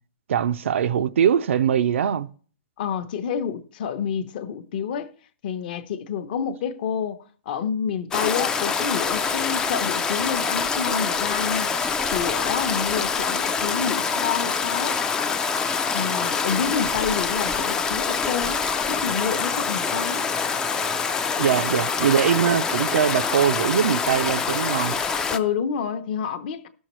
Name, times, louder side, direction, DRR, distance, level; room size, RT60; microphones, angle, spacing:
voice 1, 0.3-2.3 21.4-25.0, right 8 dB, 70° right, 0.4 m, -22 dB
voice 2, 2.8-5.1 5.4-7.2 7.5-11.7 12.1-15.0 15.9-20.2 25.3-26.7, left 7 dB, 45° left, 0.7 m, -28 dB
Stream, 8.1-25.4, left 5 dB, 10° left, 0.3 m, -25 dB
16.0 x 6.3 x 3.0 m
hypercardioid pair, 160°, 7 cm